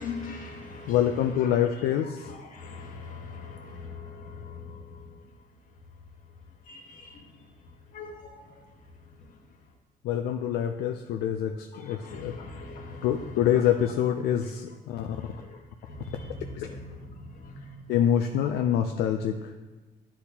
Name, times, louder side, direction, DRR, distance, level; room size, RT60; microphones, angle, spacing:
voice 1, 0.0-1.6 2.0-5.3 6.4-9.4 11.7-13.6 14.9-17.9 18.4-18.5, left 3 dB, 50° left, 1 dB, 1.3 m, -42 dB
voice 2, 0.9-2.3 10.0-12.4 13.0-15.1 16.5-16.7 17.9-19.5, left 10 dB, 75° left, 5 dB, 0.4 m, -26 dB
9.6 x 4.2 x 2.8 m, 1.2 s
cardioid pair, 110°, 17 cm